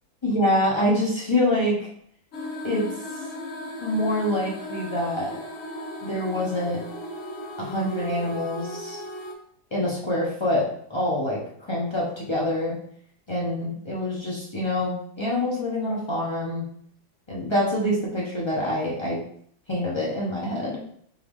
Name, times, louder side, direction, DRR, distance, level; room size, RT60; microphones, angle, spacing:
voice 1, 0.2-1.8 2.6-2.9 3.8-5.4 6.0-6.8 7.6-9.0 9.7-11.4 11.7-12.8 13.3-16.6 17.3-19.2 19.7-20.8, left 1 dB, 30° left, -5 dB, 0.5 m, -25 dB
sound 1, 2.3-9.3, left 1 dB, 65° left, 0.8 m, -36 dB
3.7 x 3.7 x 3.6 m, 0.66 s
omnidirectional pair, 2.2 m